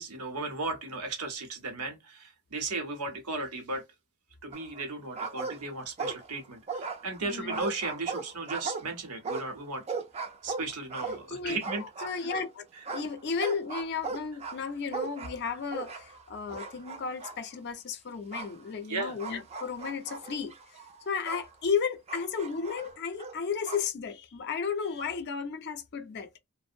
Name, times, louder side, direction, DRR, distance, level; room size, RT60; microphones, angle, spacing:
voice 1, 0.0-3.8 4.4-10.0 10.4-12.1 18.9-19.2, right 3 dB, 85° right, 0.8 m, -36 dB
sound 1, 4.5-4.9 5.1-6.4 6.7-12.5 12.8-16.2 16.5-17.4 18.3-18.5 19.2-21.5 22.1-23.9, right 4 dB, 30° right, 0.4 m, -37 dB
voice 2, 7.2-7.6 11.3-12.6 12.9-26.3, left 6 dB, 50° left, 0.5 m, -34 dB
2.5 x 2.0 x 2.6 m
head